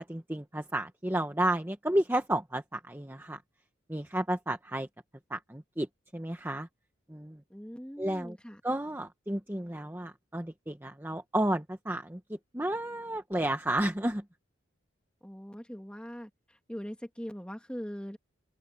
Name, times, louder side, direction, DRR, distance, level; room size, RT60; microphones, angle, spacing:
voice 1, 0.0-3.4 3.9-4.9 5.3-6.7 7.1-7.4 8.0-8.4 8.6-14.2, right 1 dB, 10° right, 1.0 m, -32 dB
voice 2, 7.5-8.6 15.2-16.3 16.7-18.2, equal, 5° left, 2.3 m, -41 dB
head